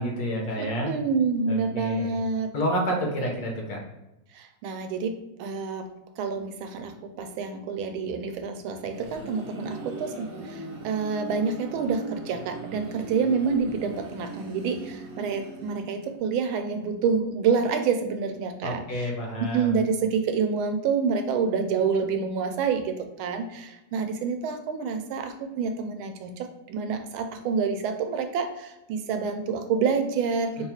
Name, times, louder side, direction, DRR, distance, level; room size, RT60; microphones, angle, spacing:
voice 1, 0.0-0.9 1.5-2.2 2.5-3.8 18.6-19.7 30.6-30.7, equal, 65° left, 0 dB, 1.2 m, -29 dB
voice 2, 0.6-2.5 4.3-5.9 6.2-19.1 19.5-30.7, right 5 dB, 90° right, 6 dB, 1.4 m, -28 dB
sound 1, 8.6-16.3, right 3 dB, 65° right, 1.2 m, -40 dB
3.4 x 2.3 x 4.3 m, 0.94 s
omnidirectional pair, 2.2 m